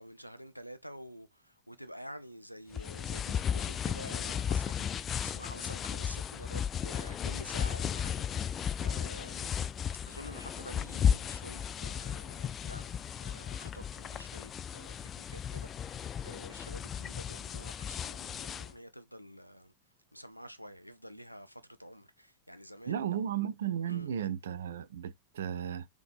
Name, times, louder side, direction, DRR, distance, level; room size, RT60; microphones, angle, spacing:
voice 1, 0.0-4.9 5.2-9.5 10.0-19.7 20.1-23.0 23.9-24.1, equal, 90° left, 0.6 m, -49 dB
sound 1, 2.7-18.7, left 8 dB, 25° left, 0.3 m, -35 dB
voice 2, 22.9-25.9, right 9 dB, 65° right, 0.5 m, -34 dB
3.8 x 3.5 x 3.6 m
figure-of-eight pair, 90°, 0 cm